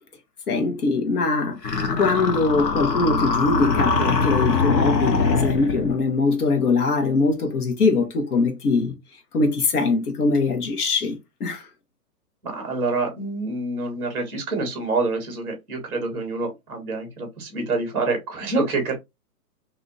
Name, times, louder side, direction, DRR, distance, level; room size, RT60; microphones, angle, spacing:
voice 1, 0.5-1.6 2.0-8.9 9.3-11.6, left 3 dB, 65° left, 1.2 m, -22 dB
sound 1, 1.6-6.0, left 4 dB, 90° left, 1.0 m, -22 dB
voice 2, 12.4-18.9, right 3 dB, 5° right, 0.9 m, -27 dB
2.7 x 2.4 x 4.0 m
hypercardioid pair, 150°, 48 cm